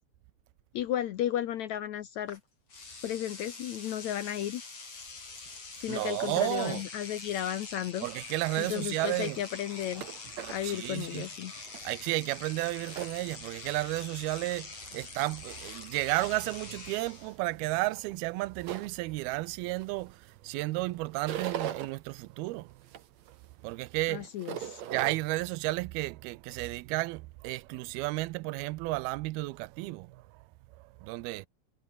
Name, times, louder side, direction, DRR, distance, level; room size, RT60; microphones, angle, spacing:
voice 1, 0.7-2.4 3.0-4.6 5.8-8.1 8.6-10.0 10.5-11.5 24.1-24.8, left 11 dB, 70° left, 1.8 m, -34 dB
Engine / Domestic sounds home sounds, 2.3-2.4 2.7-17.4, left 4 dB, 40° left, 6.2 m, -45 dB
voice 2, 5.9-6.8 8.0-9.4 10.6-11.3 11.8-22.8 23.6-24.3 24.9-30.4 30.8-31.5, right 20 dB, 90° right, 2.6 m, -33 dB
sound 1, 8.7-13.7 14.1-15.0 15.5-16.0 16.5-20.3 20.6-21.9 22.4-25.1, right 10 dB, 55° right, 2.4 m, -42 dB
omnidirectional pair, 4.4 m